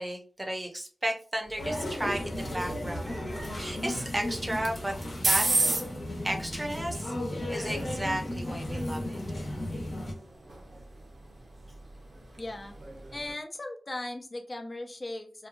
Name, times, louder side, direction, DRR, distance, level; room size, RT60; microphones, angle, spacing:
voice 1, 0.0-4.9 5.2-5.8 6.2-7.2 7.5-9.2, right 1 dB, 20° right, 3 dB, 0.7 m, -34 dB
sound 1, 1.4-13.3, right 2 dB, 65° right, 0.7 m, -36 dB
sound 2, 1.6-10.1, left 1 dB, 70° left, 0.9 m, -35 dB
voice 2, 12.4-12.8 13.1-15.5, left 2 dB, 40° left, 5 dB, 0.5 m, -38 dB
2.7 x 2.2 x 2.5 m, 0.40 s
wide cardioid pair, 85°, 0 cm